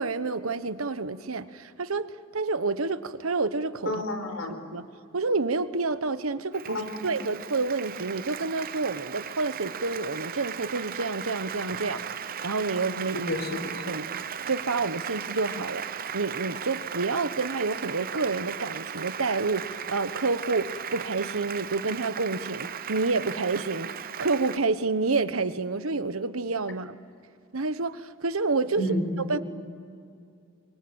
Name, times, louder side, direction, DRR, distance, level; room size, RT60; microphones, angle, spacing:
voice 1, 0.0-3.9 4.7-4.8 5.1-12.0 12.4-13.3 13.9-14.2 14.5-27.0 27.5-28.8 29.3-29.4, right 3 dB, 90° right, 12 dB, 1.2 m, -29 dB
voice 2, 3.9-4.6 6.6-7.1 13.1-13.9 28.8-29.0 29.3-29.4, left 1 dB, 70° left, 6 dB, 4.7 m, -31 dB
Applause, 6.5-24.6, right 8 dB, 45° right, 0.7 m, -37 dB
25.0 x 25.0 x 8.9 m, 2.3 s
head